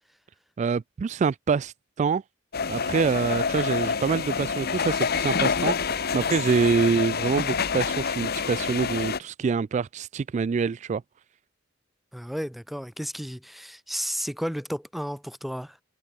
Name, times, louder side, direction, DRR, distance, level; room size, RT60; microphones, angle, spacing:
voice 1, 0.6-2.2 2.7-11.0, right 5 dB, 35° right, 0.3 m, -26 dB
sound 1, 2.5-9.2, left 5 dB, 55° left, 1.0 m, -27 dB
voice 2, 12.1-15.8, equal, ahead, 1.2 m, -33 dB
head